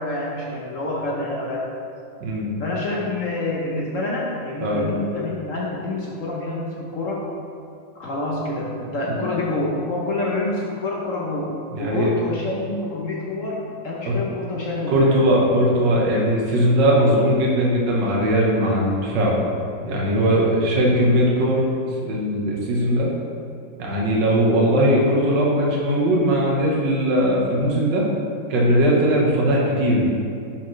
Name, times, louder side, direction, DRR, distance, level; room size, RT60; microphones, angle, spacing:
voice 1, 0.0-1.6 2.6-7.3 7.9-11.5 11.8-15.2, left 2 dB, 60° left, -3 dB, 0.9 m, -27 dB
voice 2, 2.2-2.5 4.6-4.8 9.0-9.3 11.7-12.1 14.0-14.2 14.9-19.4 19.8-21.6 22.0-23.1 23.8-28.1 28.5-30.1, equal, 70° right, -3 dB, 1.7 m, -19 dB
10.0 x 4.3 x 3.1 m, 2.5 s
omnidirectional pair, 2.1 m